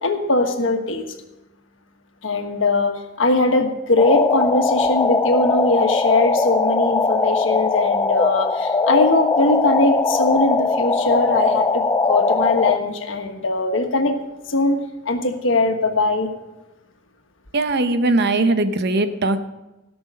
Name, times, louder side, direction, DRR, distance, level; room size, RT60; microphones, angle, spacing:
voice 1, 0.0-1.0 2.2-14.2 14.5-14.8 15.0-16.3, left 2 dB, 80° left, 5 dB, 1.4 m, -20 dB
sound 1, 4.0-12.8, left 3 dB, 20° left, 0.4 m, -20 dB
voice 2, 17.5-19.4, right 2 dB, 60° right, 9 dB, 0.8 m, -19 dB
17.0 x 6.2 x 5.3 m, 1.0 s
head